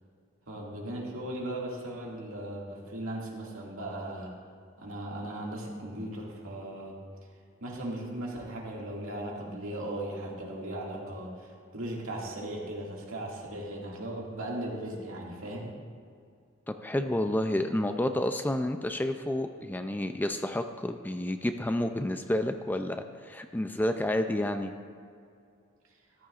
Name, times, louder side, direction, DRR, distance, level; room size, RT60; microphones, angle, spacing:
voice 1, 0.5-4.3 4.8-7.0 7.6-15.7, right 1 dB, 80° right, -3 dB, 2.1 m, -37 dB
voice 2, 16.7-24.7, left 1 dB, 10° left, 7 dB, 0.3 m, -30 dB
14.0 x 13.0 x 2.4 m, 2.3 s
head